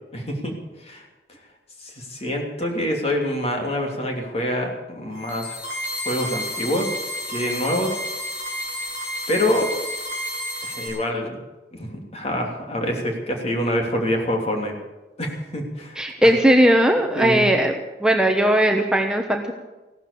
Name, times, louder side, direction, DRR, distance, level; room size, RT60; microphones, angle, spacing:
voice 1, 0.1-0.5 0.8-1.0 1.8-5.6 6.0-7.0 7.3-7.9 9.3-9.7 10.6-11.4 11.7-14.7 15.2-16.3 17.1-17.5, left 1 dB, 35° left, 1 dB, 3.1 m, -26 dB
sound 1, 5.1-10.9, equal, 90° left, 6.5 m, -31 dB
voice 2, 16.0-17.7 18.0-19.5, right 1 dB, 5° right, 3 dB, 1.0 m, -18 dB
16.0 x 12.5 x 6.9 m, 1.1 s
head